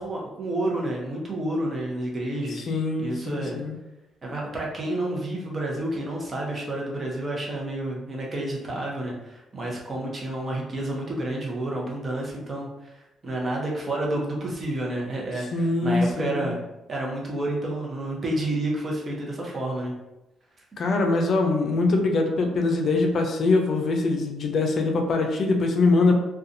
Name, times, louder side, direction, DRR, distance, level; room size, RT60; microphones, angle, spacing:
voice 1, 0.0-2.6 3.0-3.6 4.2-12.9 13.2-19.9, right 1 dB, 40° right, -2 dB, 0.7 m, -30 dB
voice 2, 2.7-3.7 15.5-16.5 20.8-26.1, left 3 dB, 55° left, 2 dB, 0.4 m, -23 dB
2.6 x 2.3 x 2.5 m, 0.96 s
cardioid pair, 90°, 0 cm